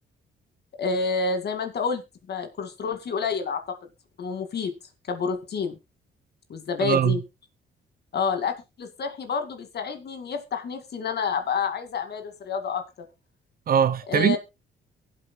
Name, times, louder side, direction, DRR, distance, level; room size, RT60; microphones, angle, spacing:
voice 1, 0.8-3.8 4.2-4.7 5.1-5.8 6.5-7.2 8.1-12.8 14.1-14.4, left 5 dB, 55° left, 2.2 m, -29 dB
voice 2, 6.8-7.2 13.7-14.4, right 8 dB, 50° right, 0.7 m, -21 dB
23.0 x 7.9 x 2.2 m
cardioid pair, 90°, 20 cm